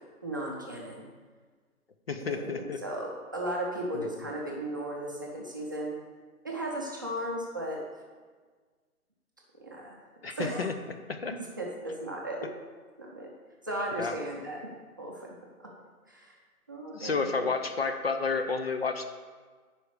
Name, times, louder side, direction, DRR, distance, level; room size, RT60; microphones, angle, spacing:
voice 1, 0.2-1.0 2.2-6.0 6.4-7.8 9.6-10.0 10.3-10.7 11.4-12.5 13.0-13.3 13.6-14.6 15.0-15.7 16.1-16.4 16.7-17.5, right 1 dB, 15° right, -3 dB, 0.6 m, -36 dB
voice 2, 2.1-2.8 3.9-4.3 10.2-10.7 11.1-11.4 14.0-14.1 16.9-19.0, left 4 dB, 45° left, 7 dB, 0.6 m, -31 dB
9.8 x 4.9 x 6.5 m, 1.5 s
hypercardioid pair, 165°, 44 cm